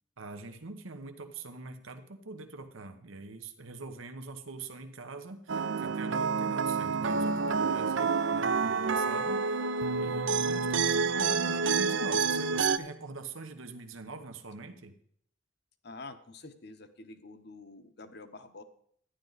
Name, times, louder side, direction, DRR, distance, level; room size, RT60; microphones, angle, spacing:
voice 1, 0.2-9.6 10.0-14.9, right 3 dB, 90° right, 7 dB, 1.1 m, -43 dB
sound 1, 5.5-12.8, right 5 dB, 70° right, 0.6 m, -28 dB
voice 2, 9.8-10.2 15.8-18.6, left 3 dB, 55° left, 10 dB, 1.0 m, -48 dB
12.5 x 10.5 x 4.0 m, 0.64 s
head